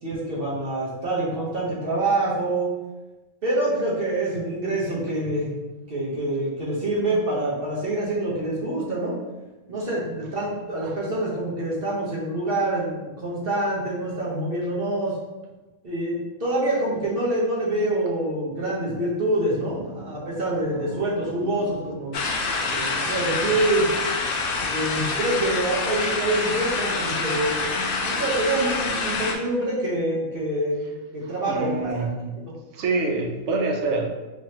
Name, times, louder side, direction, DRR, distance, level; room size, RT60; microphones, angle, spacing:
voice 1, 0.0-2.7 3.4-5.5 5.9-9.2 9.7-15.2 15.8-22.1 22.7-23.9 24.7-32.1, right 1 dB, 45° right, -5 dB, 1.1 m, -26 dB
voice 2, 19.9-23.0 31.2-32.4 32.7-34.1, right 3 dB, 60° right, 2 dB, 0.8 m, -29 dB
sound 1, 22.1-29.3, left 4 dB, 90° left, 0.4 m, -26 dB
3.6 x 3.1 x 2.8 m, 1.1 s
omnidirectional pair, 1.5 m